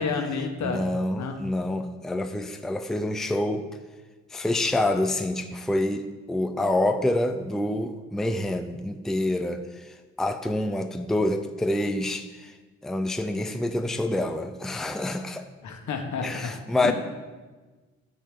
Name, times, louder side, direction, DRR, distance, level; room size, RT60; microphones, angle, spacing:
voice 1, 0.0-0.8 1.2-1.4 15.6-16.9, left 5 dB, 70° left, 3 dB, 1.6 m, -30 dB
voice 2, 0.6-3.7 4.3-12.5 12.8-15.4 16.2-16.9, left 1 dB, ahead, 7 dB, 0.5 m, -27 dB
10.5 x 5.5 x 6.8 m, 1.3 s
cardioid pair, 90°, 30 cm